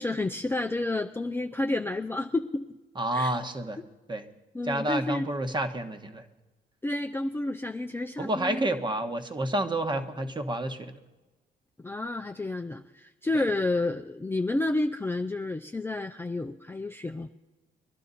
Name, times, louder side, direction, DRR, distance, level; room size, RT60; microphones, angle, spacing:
voice 1, 0.0-2.6 3.1-3.3 4.5-5.3 6.8-8.7 11.8-17.3, left 2 dB, 10° left, 4 dB, 0.5 m, -30 dB
voice 2, 2.9-3.8 4.1-4.3 4.6-6.2 8.2-10.9 13.3-13.4, right 1 dB, 25° right, 7 dB, 1.3 m, -29 dB
21.5 x 11.5 x 4.2 m, 1.1 s
cardioid pair, 90°, 20 cm